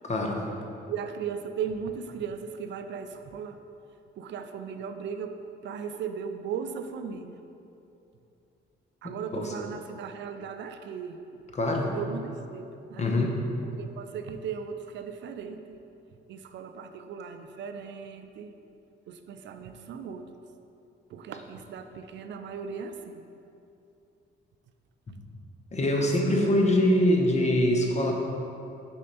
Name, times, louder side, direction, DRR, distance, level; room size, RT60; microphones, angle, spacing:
voice 1, 0.0-0.4 9.0-9.5 11.5-11.9 13.0-13.4 25.7-28.1, left 1 dB, 35° left, 1 dB, 0.8 m, -24 dB
voice 2, 0.9-3.6 4.2-5.4 5.6-7.4 9.0-11.2 11.8-13.1 13.6-15.8 16.3-18.5 19.1-20.2 21.1-23.2 26.0-26.9, right 7 dB, 65° right, 8 dB, 0.4 m, -37 dB
4.4 x 4.2 x 5.3 m, 2.7 s
cardioid pair, 90°, 20 cm